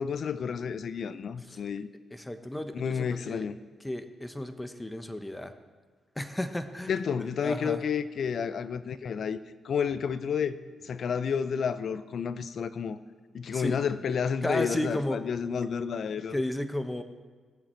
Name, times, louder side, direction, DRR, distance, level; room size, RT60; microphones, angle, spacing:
voice 1, 0.0-1.9 2.7-3.5 6.9-9.4 9.6-10.6 10.8-13.0 13.3-16.4, left 6 dB, 65° left, 0.6 m, -30 dB
voice 2, 2.1-3.5 3.8-5.5 6.1-7.8 13.5-13.8 14.4-15.2 16.3-17.0, left 1 dB, 15° left, 1.1 m, -33 dB
18.0 x 7.3 x 4.5 m
supercardioid pair, 55°, 0 cm